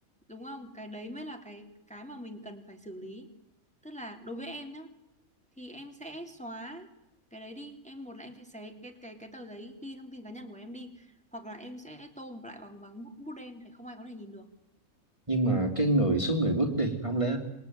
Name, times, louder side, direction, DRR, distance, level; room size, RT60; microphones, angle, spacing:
voice 1, 0.3-3.3 3.8-4.9 5.6-6.9 7.3-14.5, equal, 5° left, 3 dB, 3.1 m, -43 dB
voice 2, 15.3-17.4, right 1 dB, 20° right, 4 dB, 2.9 m, -26 dB
27.5 x 22.0 x 9.5 m, 0.95 s
omnidirectional pair, 1.5 m